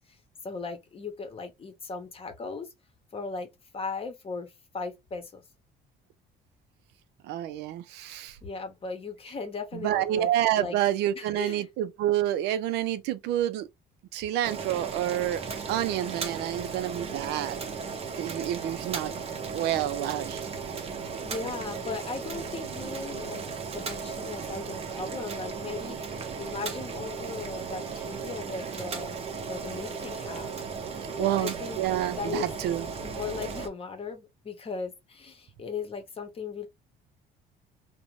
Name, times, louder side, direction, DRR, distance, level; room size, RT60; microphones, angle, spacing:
voice 1, 0.4-2.7 3.1-5.4 8.4-10.8 11.1-11.7 18.4-18.6 21.2-23.4 23.7-29.2 29.5-30.6 31.2-32.5 33.0-36.7, left 4 dB, 35° left, 0.8 m, -38 dB
voice 2, 7.2-8.4 9.8-13.7 14.1-15.4 15.7-17.6 18.1-19.2 19.5-20.4 31.2-32.9, right 12 dB, 85° right, 0.4 m, -28 dB
Boiling, 14.4-33.7, right 5 dB, 35° right, 0.7 m, -36 dB
2.5 x 2.1 x 3.0 m
cardioid pair, 110°, 17 cm